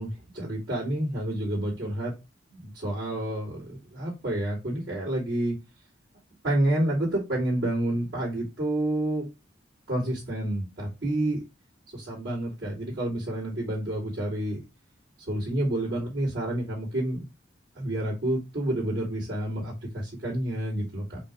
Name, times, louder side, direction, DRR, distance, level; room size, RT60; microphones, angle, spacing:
voice 1, 0.0-2.1 2.5-5.6 6.4-9.2 9.9-11.4 11.9-14.6 15.3-17.3 17.7-21.2, right 1 dB, 85° right, -10 dB, 2.8 m, -29 dB
5.1 x 2.7 x 3.6 m, 0.27 s
head